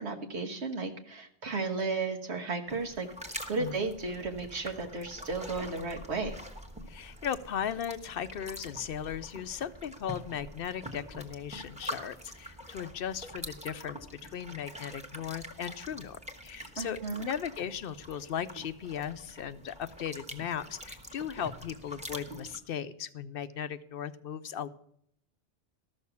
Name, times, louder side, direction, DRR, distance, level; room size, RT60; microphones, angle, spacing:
voice 1, 0.0-3.1 3.5-6.3 16.8-17.3, right 3 dB, 80° right, 3 dB, 1.5 m, -34 dB
sound 1, 2.7-22.6, equal, 5° right, 1.2 m, -45 dB
voice 2, 3.6-3.9 6.9-24.7, left 8 dB, 60° left, 13 dB, 0.7 m, -37 dB
13.0 x 6.6 x 6.9 m, 0.70 s
omnidirectional pair, 1.1 m